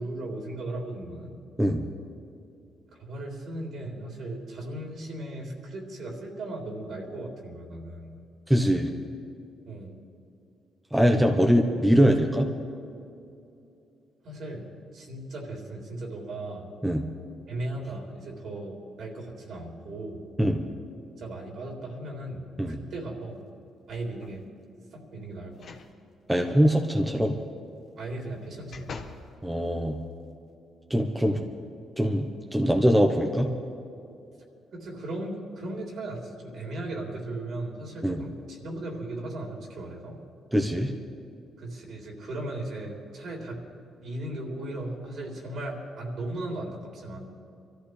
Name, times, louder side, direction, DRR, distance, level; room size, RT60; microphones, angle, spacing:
voice 1, 0.0-1.4 2.9-8.2 9.7-10.0 14.2-16.7 17.5-20.2 21.2-23.4 23.9-24.4 24.9-25.7 28.0-28.9 31.3-31.5 34.7-40.2 41.6-43.6 44.0-47.2, right 1 dB, 65° right, -1 dB, 3.7 m, -37 dB
voice 2, 8.5-8.9 10.9-12.5 16.8-17.0 20.4-20.6 22.6-22.7 26.3-27.4 29.4-30.0 30.9-31.4 32.0-33.5 38.0-38.2 40.5-40.9, equal, 5° right, 2 dB, 1.1 m, -22 dB
sound 1, 23.9-24.4 25.5-25.9 26.3-26.4 28.0-29.3 29.9-30.0, left 4 dB, 60° left, 1.3 m, -44 dB
24.0 x 14.0 x 3.4 m, 2.6 s
cardioid pair, 90°, 0 cm